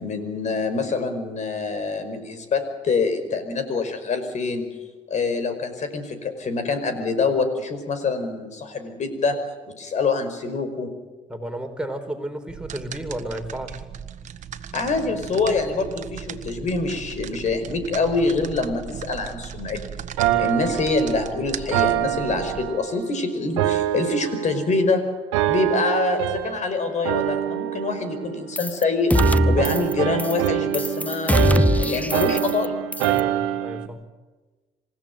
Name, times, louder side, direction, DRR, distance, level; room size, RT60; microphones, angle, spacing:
voice 1, 0.0-4.7 5.1-9.4 9.8-10.9 14.7-20.0 20.4-25.0 25.4-29.1 29.5-32.8, left 3 dB, 55° left, 9 dB, 5.3 m, -25 dB
voice 2, 11.3-13.8 20.3-20.5 33.0-34.0, right 1 dB, 5° right, 4 dB, 4.6 m, -32 dB
sound 1, 12.5-22.7, right 8 dB, 60° right, 1.6 m, -37 dB
sound 2, 20.2-23.1 23.6-24.9 25.3-26.7 27.0-28.8 29.1-33.9, right 13 dB, 90° right, 1.1 m, -25 dB
sound 3, 28.6-28.8 29.1-29.9 30.2-30.5 30.7-32.7 32.9-33.2, left 1 dB, 10° left, 1.3 m, -21 dB
27.5 x 16.0 x 9.3 m, 1.2 s
hypercardioid pair, 55°, 14 cm